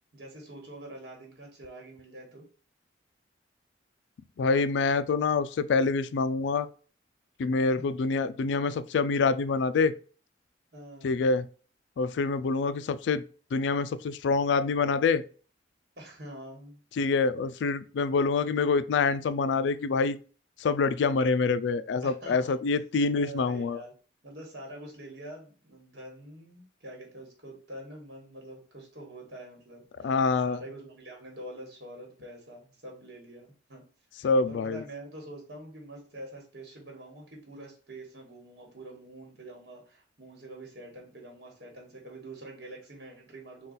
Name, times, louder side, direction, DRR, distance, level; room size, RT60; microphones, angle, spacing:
voice 1, 0.1-2.4 10.7-11.3 16.0-16.8 22.0-22.5 23.1-23.9 24.2-30.1 30.4-33.8 34.2-43.7, right 1 dB, 60° right, 1.4 m, -45 dB
voice 2, 4.4-6.7 7.4-9.9 11.0-11.4 12.0-13.2 13.5-15.2 17.0-20.2 20.6-23.8 30.0-30.6 34.2-34.8, left 4 dB, 70° left, 0.3 m, -26 dB
3.9 x 2.4 x 3.9 m
head